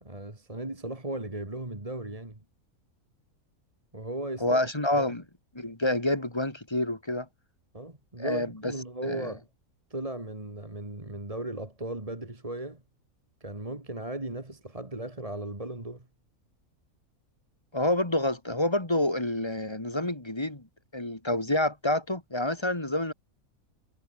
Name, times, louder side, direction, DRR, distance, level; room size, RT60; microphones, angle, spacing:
voice 1, 0.0-2.4 3.9-4.6 4.9-5.1 7.7-9.5 9.9-12.8 13.4-16.1, right 1 dB, 25° right, 2.7 m, -37 dB
voice 2, 4.4-5.2 5.5-7.3 8.2-8.7 9.0-9.3 17.7-20.7 20.9-23.1, left 1 dB, 20° left, 2.4 m, -28 dB
omnidirectional pair, 1.5 m